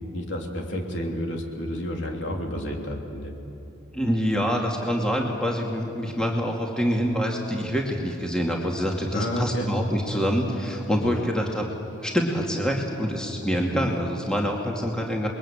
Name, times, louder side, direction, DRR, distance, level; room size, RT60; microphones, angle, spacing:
voice 1, 0.1-3.3 9.1-9.7 10.2-10.3 11.0-11.2, equal, 55° left, 1 dB, 3.3 m, -30 dB
voice 2, 3.9-11.7 12.0-15.3, equal, 5° left, -1 dB, 2.3 m, -26 dB
29.5 x 21.5 x 8.7 m, 2.7 s
head